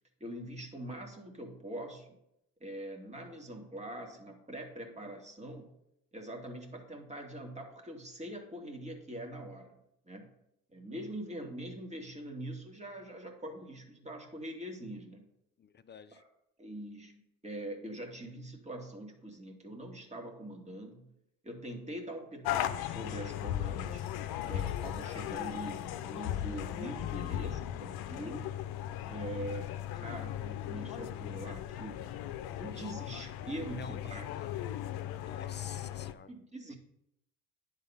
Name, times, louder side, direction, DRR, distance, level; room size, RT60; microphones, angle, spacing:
voice 1, 0.2-2.2 2.6-5.7 6.1-9.8 10.1-10.3 10.7-15.2 16.1-16.2 16.6-21.0 21.4-24.0 24.4-28.5 29.1-32.0 32.6-34.3 36.3-36.8, right 1 dB, 15° right, 2 dB, 2.2 m, -43 dB
voice 2, 15.6-16.2 32.7-32.9 33.7-34.6 35.2-36.3, left 7 dB, 25° left, 11 dB, 0.7 m, -50 dB
sound 1, 22.4-36.1, left 11 dB, 65° left, 0.7 m, -37 dB
10.0 x 4.1 x 5.6 m, 0.80 s
hypercardioid pair, 60°, 40 cm